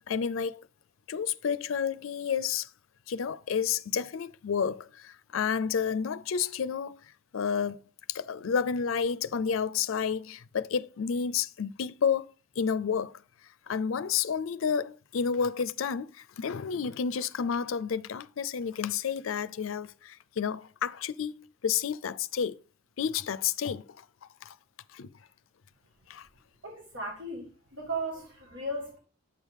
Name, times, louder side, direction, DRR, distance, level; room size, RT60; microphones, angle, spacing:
voice 1, 0.1-0.7 1.1-2.7 3.1-7.0 7.3-7.8 8.1-12.3 12.6-13.1 13.7-22.6 23.0-24.1 24.4-24.6 24.9-25.1 26.1-26.3, left 7 dB, 80° left, 0.4 m, -30 dB
voice 2, 26.6-29.0, right 2 dB, 65° right, 1.7 m, -36 dB
8.6 x 6.4 x 3.6 m
head